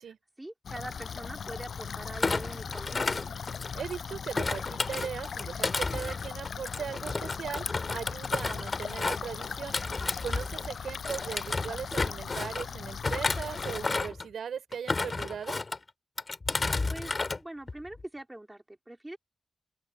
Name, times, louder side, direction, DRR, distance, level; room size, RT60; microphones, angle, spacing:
voice 1, 0.1-3.2 16.9-17.1 17.4-19.2, right 1 dB, 10° right, 4.0 m, -43 dB
sound 1, 0.6-13.9, left 6 dB, 65° left, 7.4 m, -39 dB
Thump thud, 2.1-3.9 4.3-10.7 11.0-12.6 13.0-14.3 14.7-15.8 16.2-17.4 17.7-18.0, left 3 dB, 30° left, 2.9 m, -32 dB
voice 2, 3.7-9.8 10.2-15.6, right 7 dB, 90° right, 5.2 m, -38 dB
open air
wide cardioid pair, 130°, 0 cm